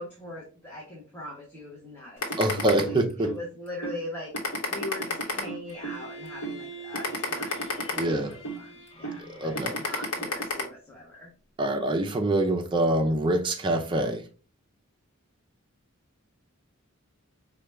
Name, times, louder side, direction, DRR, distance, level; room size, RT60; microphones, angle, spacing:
voice 1, 0.0-2.5 2.9-8.0 8.3-11.3, left 1 dB, 10° left, 0.9 m, -41 dB
sound 1, 2.2-3.4 3.8-4.0 4.3-6.0 6.4-6.6 6.9-8.6 9.0-9.2 9.6-10.6, left 2 dB, 70° left, 1.0 m, -30 dB
voice 2, 2.4-3.3 7.1-7.2 8.0-8.3 9.3-9.7 11.6-14.2, right 1 dB, 20° right, 0.5 m, -25 dB
Bowed string instrument, 5.7-10.6, right 3 dB, 30° left, 1.2 m, -45 dB
4.7 x 2.3 x 3.2 m
head